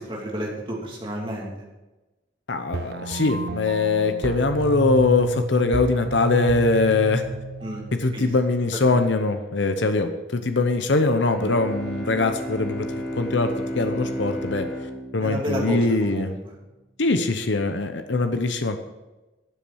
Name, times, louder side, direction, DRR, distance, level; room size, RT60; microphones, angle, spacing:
voice 1, 0.0-1.5 7.6-7.8 8.1-8.3 15.2-16.3, equal, 25° right, -3 dB, 3.0 m, -30 dB
voice 2, 2.5-7.2 7.9-16.3 17.0-18.8, left 3 dB, 70° left, 7 dB, 0.8 m, -22 dB
sound 1, 2.7-8.7, right 3 dB, 55° right, 0.6 m, -32 dB
Bowed string instrument, 11.3-16.2, equal, 5° left, 3.3 m, -33 dB
13.0 x 7.2 x 6.3 m, 1.1 s
head